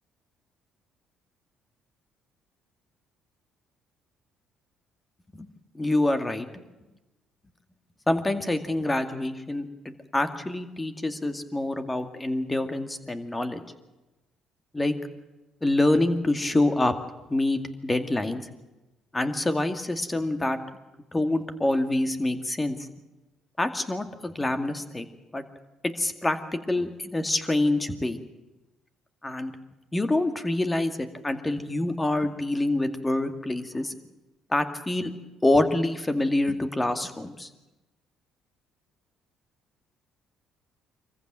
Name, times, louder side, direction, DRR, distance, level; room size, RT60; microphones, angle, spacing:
voice 1, 5.7-6.5 8.1-9.7 10.1-13.6 14.7-15.0 15.6-16.9 17.3-18.4 19.1-20.6 21.1-22.8 23.6-25.1 25.3-25.4 26.0-26.4 26.7-28.2 29.2-29.5 29.9-33.9 34.5-35.1 35.4-37.5, left 2 dB, 15° left, 8 dB, 2.2 m, -26 dB
24.5 x 15.0 x 9.1 m, 1.1 s
supercardioid pair, 80°, 0 cm